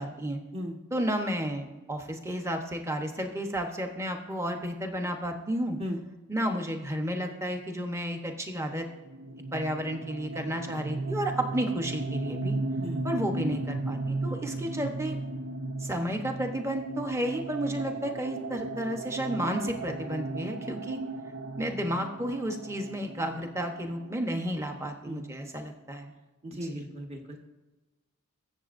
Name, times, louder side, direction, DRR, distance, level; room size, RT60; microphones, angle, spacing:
voice 1, 0.0-0.4 0.9-5.8 6.3-8.9 9.5-12.6 13.0-15.2 15.8-21.0 21.6-26.1 26.6-26.8, equal, 15° right, 4 dB, 0.9 m, -32 dB
sound 1, 9.0-24.6, right 2 dB, 85° right, 0.7 m, -36 dB
voice 2, 12.8-13.1 25.0-25.4 26.4-27.4, equal, 30° right, 1 dB, 1.3 m, -37 dB
22.0 x 7.3 x 2.6 m, 1.1 s
head